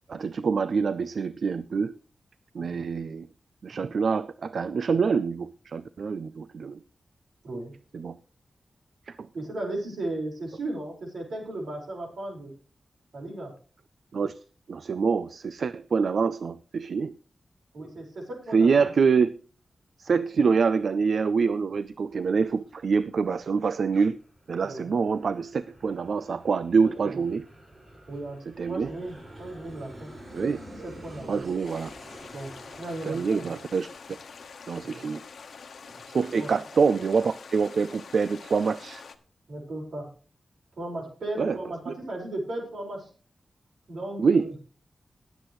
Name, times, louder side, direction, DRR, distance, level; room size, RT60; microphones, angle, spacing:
voice 1, 0.1-1.9 2.5-3.3 3.6-6.8 7.9-8.2 14.1-14.3 14.7-17.1 18.5-19.3 20.0-24.2 24.5-27.4 28.6-28.9 30.3-30.6 31.3-31.9 33.0-34.2 34.7-35.2 36.1-39.0 41.4-41.6 41.9-42.0 44.2-44.5, right 5 dB, 65° right, 14 dB, 0.4 m, -25 dB
voice 2, 9.3-12.5 13.1-13.5 17.7-18.9 20.1-20.2 24.6-24.9 27.0-27.2 28.1-28.4 28.7-30.1 30.8-31.4 32.3-33.5 34.8-35.0 35.9-36.0 36.3-36.5 39.5-40.1 40.8-43.1 43.9-44.5, right 1 dB, 85° right, -1 dB, 4.9 m, -36 dB
Aircraft, 21.6-34.8, right 1 dB, 35° right, 5.6 m, -49 dB
sound 1, 31.7-39.2, left 5 dB, 85° left, 1.1 m, -46 dB
20.5 x 8.1 x 3.1 m, 0.39 s
wide cardioid pair, 175°, 0 cm